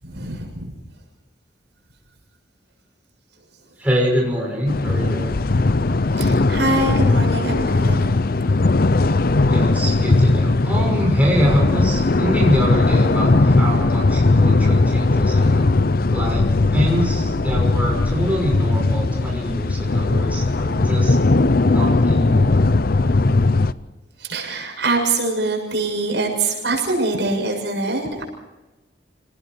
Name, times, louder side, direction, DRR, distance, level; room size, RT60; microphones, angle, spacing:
voice 1, 0.0-0.7 6.1-8.0 24.2-28.2, right 2 dB, 70° right, 1 dB, 7.0 m, -23 dB
voice 2, 3.8-5.3 9.5-15.7 16.1-16.4 16.7-21.2 21.6-22.5, equal, 10° right, -2 dB, 6.0 m, -24 dB
sound 1, 4.7-23.7, left 2 dB, 55° left, 0.6 m, -18 dB
30.0 x 19.0 x 4.7 m, 1.1 s
head